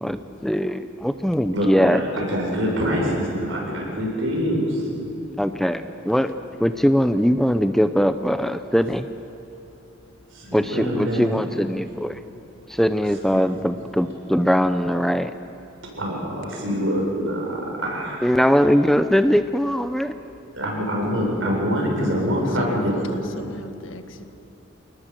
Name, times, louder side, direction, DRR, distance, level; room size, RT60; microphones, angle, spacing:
voice 1, 0.0-2.0 5.4-6.3 6.6-9.1 10.5-12.2 12.7-15.3 18.2-20.1, equal, ahead, 9 dB, 0.5 m, -21 dB
voice 2, 1.5-4.9 10.3-11.4 13.3-13.4 15.8-18.3 20.5-22.9, equal, 70° right, -1 dB, 7.2 m, -25 dB
voice 3, 22.4-24.4, left 1 dB, 75° left, 8 dB, 1.6 m, -37 dB
28.0 x 19.5 x 7.6 m, 2.9 s
head